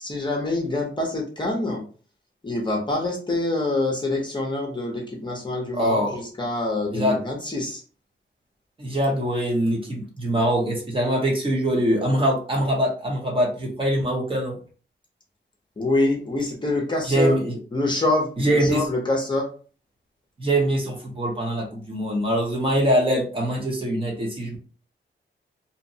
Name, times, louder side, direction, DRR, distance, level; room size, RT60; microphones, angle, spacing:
voice 1, 0.0-1.8 2.4-7.8 15.8-17.3 17.7-18.3 18.6-19.5, left 2 dB, 25° left, -1 dB, 0.7 m, -25 dB
voice 2, 5.7-6.2 6.9-7.2 8.8-14.6 17.0-17.6 18.4-18.9 20.4-24.6, right 1 dB, 25° right, -1 dB, 0.7 m, -23 dB
2.7 x 2.1 x 2.7 m, 0.39 s
wide cardioid pair, 140°, 20 cm